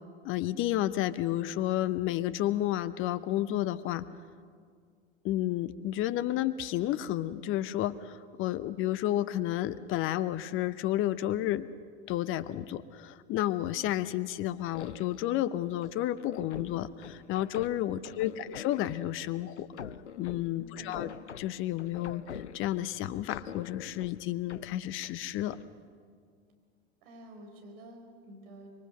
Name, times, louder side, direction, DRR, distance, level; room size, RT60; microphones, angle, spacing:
voice 1, 0.2-4.0 5.2-11.7 12.1-19.7 20.2-21.1 21.4-25.6, left 13 dB, 35° left, 17 dB, 0.8 m, -31 dB
sound 1, 14.7-15.3 15.8-19.1 19.6-22.9 23.3-25.2 25.5-25.8, left 8 dB, 85° left, 0.7 m, -45 dB
voice 2, 17.9-18.5 20.6-21.2 27.0-28.7, equal, 55° right, 3 dB, 4.7 m, -50 dB
25.0 x 23.0 x 6.6 m, 2.1 s
figure-of-eight pair, 80°, 34 cm